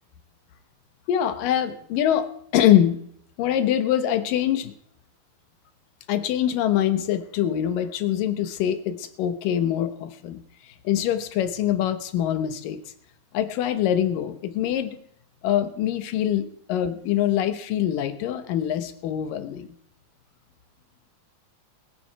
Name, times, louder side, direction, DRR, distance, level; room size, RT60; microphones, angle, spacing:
voice 1, 1.1-3.0 3.4-4.7 6.1-10.4 10.7-12.8 13.3-15.0 15.4-19.7, left 11 dB, 90° left, 10 dB, 2.7 m, -24 dB
21.5 x 9.5 x 4.6 m, 0.68 s
omnidirectional pair, 3.8 m